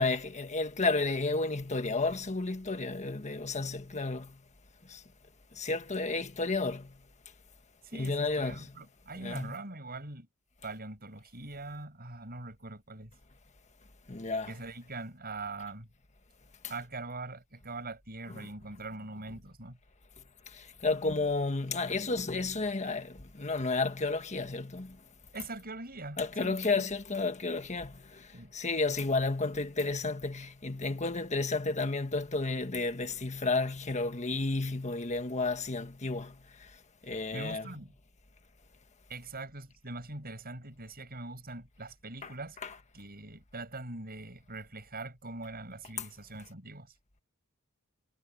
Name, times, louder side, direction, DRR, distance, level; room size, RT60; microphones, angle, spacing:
voice 1, 0.0-4.4 4.9-5.0 5.6-6.9 7.9-8.8 9.2-9.6 14.1-14.5 18.3-18.5 20.5-25.0 26.2-36.4 37.0-37.7 42.2-42.3 42.6-42.7 46.0-46.1, left 3 dB, 35° left, 1.4 m, -32 dB
voice 2, 7.8-10.3 10.6-13.1 14.5-15.9 16.7-19.8 25.3-26.8 28.3-28.5 37.3-37.9 39.1-42.6 42.9-46.9, right 2 dB, 45° right, 7.6 m, -42 dB
head